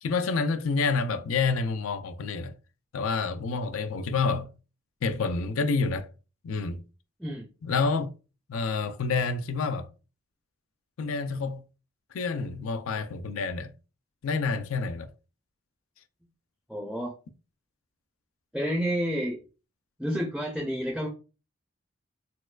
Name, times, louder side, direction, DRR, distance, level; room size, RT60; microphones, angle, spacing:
voice 1, 0.0-2.5 2.9-4.5 5.0-6.1 6.4-6.8 7.6-8.1 8.5-9.9 11.0-11.6 12.1-13.7 14.2-15.1, left 4 dB, 85° left, 0.4 m, -28 dB
voice 2, 16.7-17.2 18.5-19.4 20.0-21.1, equal, ahead, 0.4 m, -30 dB
4.3 x 2.2 x 2.3 m
head